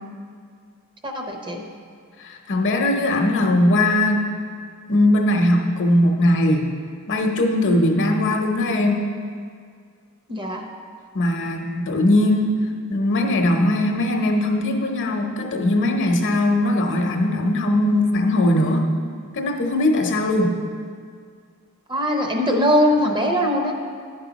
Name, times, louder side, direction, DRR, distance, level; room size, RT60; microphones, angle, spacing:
voice 1, 1.0-1.7 10.3-10.7 21.9-23.7, equal, 20° right, 2 dB, 0.7 m, -21 dB
voice 2, 2.2-4.3 4.9-6.7 7.1-9.0 11.1-18.9 19.3-20.6, left 1 dB, 55° left, 3 dB, 0.8 m, -20 dB
9.9 x 5.4 x 4.0 m, 2.1 s
head